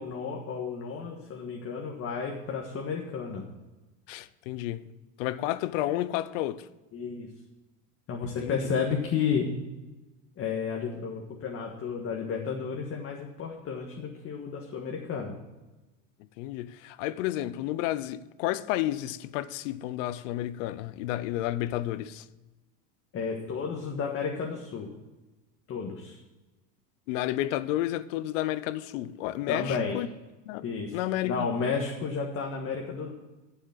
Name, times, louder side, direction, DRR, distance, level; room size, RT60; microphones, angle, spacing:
voice 1, 0.0-3.4 6.9-7.3 8.1-9.5 10.4-15.4 23.1-24.9 25.7-26.2 29.5-30.0 30.6-33.1, left 6 dB, 35° left, 1.6 m, -32 dB
voice 2, 4.1-4.9 5.2-6.7 8.2-8.6 16.4-22.3 27.1-30.1 30.5-30.6 30.9-31.5, left 14 dB, 75° left, 0.8 m, -31 dB
11.0 x 7.2 x 7.3 m
supercardioid pair, 125°, 38 cm